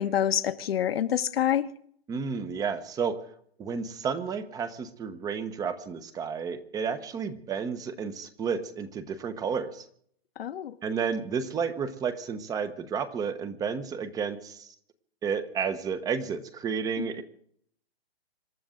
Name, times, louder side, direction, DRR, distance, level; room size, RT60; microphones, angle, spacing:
voice 1, 0.0-1.7 10.4-10.7 17.0-17.1, left 10 dB, 70° left, 1.3 m, -27 dB
voice 2, 2.1-3.2 3.6-9.8 10.8-14.7 15.2-17.2, right 6 dB, 10° right, 0.9 m, -31 dB
26.5 x 12.5 x 3.8 m
hypercardioid pair, 150°, 31 cm